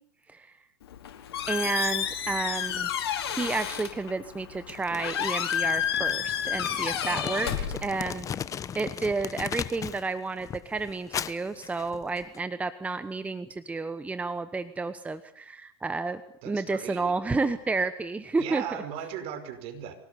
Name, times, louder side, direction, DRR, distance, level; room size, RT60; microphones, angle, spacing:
Squeak, 0.8-8.3, left 9 dB, 80° left, 4.3 m, -31 dB
voice 1, 1.5-2.9 3.2-8.3 8.7-16.2 16.5-18.6, right 3 dB, 10° right, 11 dB, 1.1 m, -31 dB
Crumpling crinkling, 4.7-10.1 10.4-12.4, left 8 dB, 25° left, 0.9 m, -38 dB
voice 2, 7.3-7.7 16.4-17.1 18.4-19.9, right 9 dB, 50° right, 8 dB, 5.1 m, -38 dB
24.5 x 18.0 x 8.4 m, 0.71 s
hypercardioid pair, 115°, 13 cm